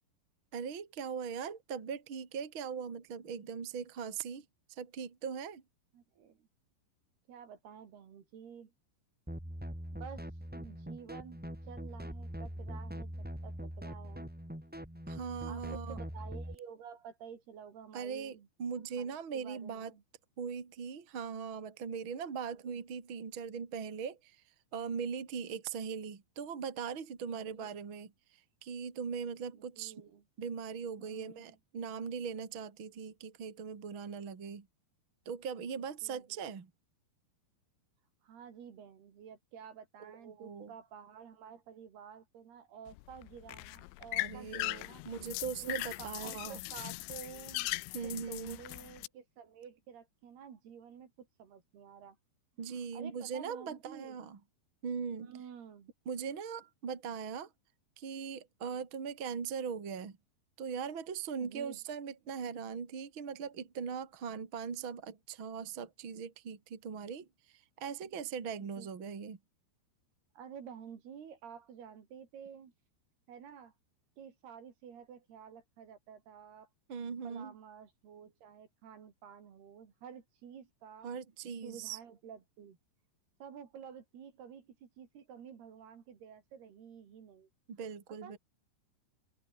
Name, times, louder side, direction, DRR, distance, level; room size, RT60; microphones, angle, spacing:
voice 1, 0.5-5.6 15.1-16.0 17.9-19.9 20.4-24.4 24.7-28.1 28.6-29.9 30.4-34.7 35.2-36.7 40.0-40.7 44.2-46.6 47.9-48.6 52.6-54.4 54.8-55.3 56.1-57.5 58.0-60.2 60.6-67.3 67.5-69.4 76.9-77.5 81.0-82.0 87.7-88.4, right 6 dB, 30° right, 2.8 m, -40 dB
voice 2, 5.9-6.5 7.3-8.7 9.9-10.2 10.5-13.1 13.4-14.3 15.5-18.5 19.0-20.0 22.5-22.8 27.3-27.7 29.5-30.2 31.0-31.6 35.8-36.5 38.2-45.0 45.6-47.7 48.0-52.2 52.7-54.2 55.2-55.9 61.4-61.8 62.3-62.4 68.6-69.1 70.3-72.7 73.3-73.7 74.2-76.7 77.2-81.1 81.6-82.8 83.4-87.5 88.2-88.4, right 7 dB, 60° right, 4.8 m, -51 dB
sound 1, 9.3-16.6, equal, ahead, 2.6 m, -42 dB
sound 2, 42.9-49.1, left 24 dB, 90° left, 3.0 m, -40 dB
open air
omnidirectional pair, 5.3 m